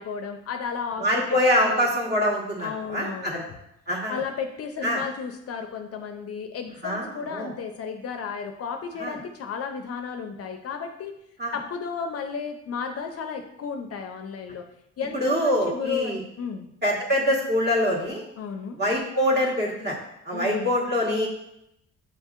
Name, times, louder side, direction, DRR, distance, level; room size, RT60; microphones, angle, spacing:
voice 1, 0.0-1.9 2.6-3.6 4.1-11.1 11.5-14.7 15.0-16.7 18.4-18.8 20.3-20.7, left 6 dB, 50° left, 5 dB, 0.5 m, -33 dB
voice 2, 1.0-3.4 3.9-4.2 4.8-5.0 6.8-7.5 9.0-9.2 11.4-11.5 15.1-16.2 16.8-18.2 18.8-20.0 20.2-21.3, equal, 35° right, -3 dB, 1.4 m, -24 dB
7.3 x 2.7 x 2.5 m, 0.80 s
cardioid pair, 90°, 30 cm